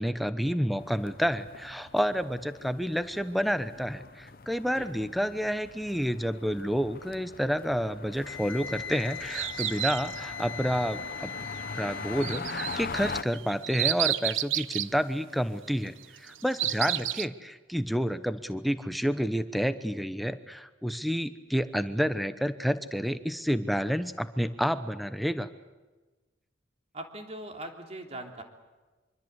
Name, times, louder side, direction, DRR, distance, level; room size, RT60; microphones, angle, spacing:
voice 1, 0.0-11.3 11.7-25.5, equal, ahead, 11 dB, 1.0 m, -29 dB
sound 1, 0.8-13.2, left 4 dB, 45° left, 0.8 m, -42 dB
Wind instrument woodwind instrument, 8.2-12.4, left 6 dB, 75° left, 1.5 m, -40 dB
sound 2, 8.7-10.3 12.2-14.9 16.0-17.3, right 14 dB, 85° right, 0.8 m, -31 dB
voice 2, 26.9-28.4, right 1 dB, 35° right, 3 dB, 3.3 m, -41 dB
25.0 x 25.0 x 8.3 m, 1.2 s
head